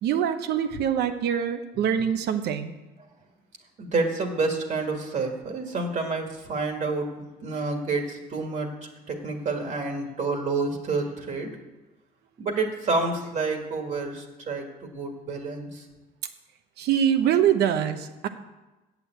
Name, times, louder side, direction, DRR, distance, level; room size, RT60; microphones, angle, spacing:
voice 1, 0.0-2.7 16.8-18.3, right 9 dB, 75° right, 9 dB, 1.0 m, -24 dB
voice 2, 3.8-8.7 9.1-11.5 12.4-14.6 14.9-15.8, right 3 dB, 45° right, 3 dB, 1.9 m, -28 dB
8.4 x 6.9 x 8.1 m, 1.1 s
cardioid pair, 110°, 17 cm